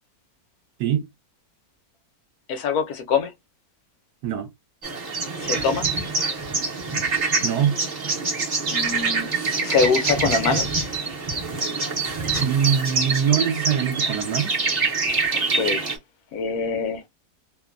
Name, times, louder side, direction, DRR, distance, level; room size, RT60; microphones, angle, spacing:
voice 1, 2.5-3.3 5.4-5.9 8.7-9.3 9.6-10.8 15.5-15.9 16.3-17.0, left 5 dB, 70° left, 1.1 m, -24 dB
sound 1, 4.8-16.0, right 4 dB, 40° right, 0.6 m, -25 dB
voice 2, 7.4-7.8 12.4-14.6, right 8 dB, 75° right, 1.2 m, -23 dB
2.9 x 2.1 x 2.3 m
omnidirectional pair, 1.8 m